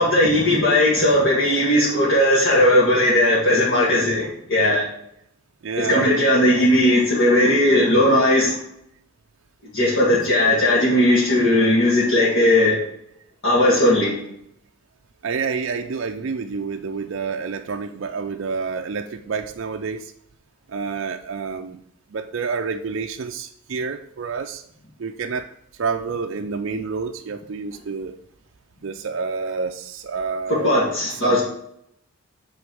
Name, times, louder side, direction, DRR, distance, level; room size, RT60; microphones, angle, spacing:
voice 1, 0.0-4.8 5.8-8.6 9.7-12.8 13.4-14.2 30.5-31.4, left 1 dB, 60° left, -8 dB, 2.3 m, -17 dB
voice 2, 5.6-6.1 15.2-20.1 20.7-21.8 22.1-24.6 25.0-25.5 25.8-28.1 28.8-30.8 31.2-31.4, right 5 dB, 60° right, 4 dB, 0.4 m, -28 dB
8.5 x 3.9 x 6.2 m, 0.73 s
head